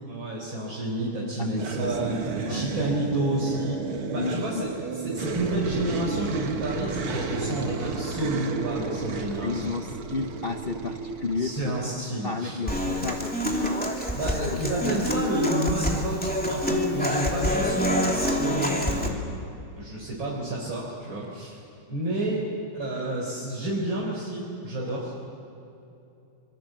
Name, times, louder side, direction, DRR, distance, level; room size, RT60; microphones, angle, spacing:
voice 1, 0.1-4.7 5.0-9.7 11.4-12.6 14.1-19.4 19.8-21.6 21.9-22.5 22.7-25.1, right 1 dB, 65° right, -4 dB, 4.8 m, -30 dB
sound 1, 1.5-11.9, right 4 dB, 90° right, 2.6 m, -32 dB
voice 2, 4.1-4.7 9.4-13.8 14.5-15.0, left 4 dB, 60° left, 6 dB, 0.6 m, -33 dB
Human voice / Acoustic guitar, 12.7-19.1, left 1 dB, 5° left, 2.7 m, -27 dB
26.0 x 24.5 x 7.7 m, 2.8 s
omnidirectional pair, 2.3 m